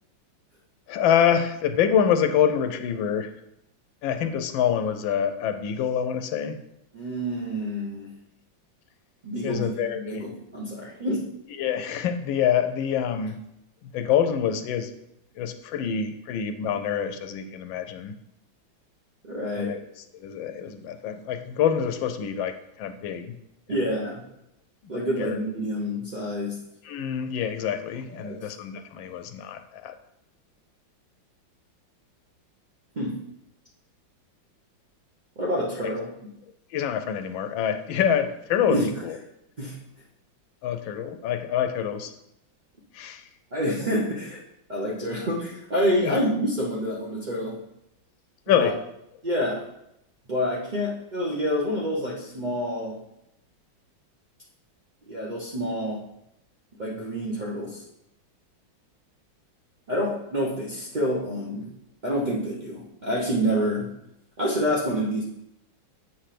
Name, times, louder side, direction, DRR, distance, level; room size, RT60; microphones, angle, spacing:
voice 1, 0.9-3.3 4.0-6.6 9.4-10.2 11.6-13.4 13.8-14.9 15.4-18.2 19.6-19.8 20.1-23.4 23.7-23.9 25.2-25.4 26.8-29.9 36.7-39.2 40.6-42.1 42.9-43.3 45.9-46.2 48.5-48.8, left 8 dB, 80° left, 9 dB, 1.3 m, -26 dB
voice 2, 6.9-8.1 9.2-9.7 10.1-11.2 19.2-19.7 23.7-24.2 24.9-26.6 28.1-28.5 33.0-33.1 35.4-36.1 38.7-38.8 39.6-39.8 43.5-44.4 44.7-47.5 48.6-48.7 49.2-49.6 50.3-53.0 55.1-56.0 56.8-57.8 59.9-61.7 62.0-63.9 64.4-65.2, equal, 40° right, -4 dB, 0.6 m, -27 dB
7.9 x 3.3 x 5.8 m, 0.82 s
omnidirectional pair, 2.1 m